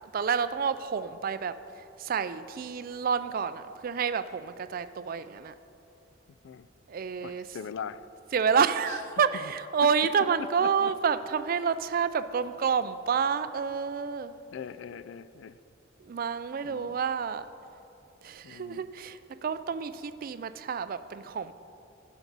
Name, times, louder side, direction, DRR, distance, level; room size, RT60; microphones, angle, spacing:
voice 1, 0.1-5.5 6.9-7.4 8.3-14.3 16.0-17.5 18.2-21.5, right 6 dB, 45° right, 13 dB, 0.3 m, -29 dB
voice 2, 6.3-6.7 7.2-8.0 8.9-9.0 9.4-9.5 10.4-10.9 14.5-15.6 16.6-17.0 18.4-18.9, left 7 dB, 60° left, 15 dB, 0.3 m, -41 dB
11.5 x 6.1 x 5.3 m, 2.7 s
head